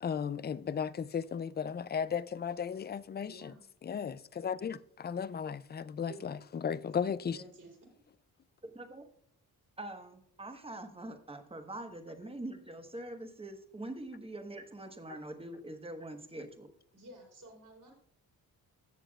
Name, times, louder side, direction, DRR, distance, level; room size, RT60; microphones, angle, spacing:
voice 1, 0.0-3.5 3.8-7.4, left 7 dB, 30° left, 0.3 m, -35 dB
voice 2, 3.3-3.6 6.1-6.4 7.3-7.9 16.9-17.9, right 2 dB, 50° right, 3.5 m, -52 dB
voice 3, 8.6-9.0 9.8-16.7, right 1 dB, 15° right, 1.2 m, -44 dB
16.0 x 7.0 x 2.4 m
cardioid pair, 95°, 38 cm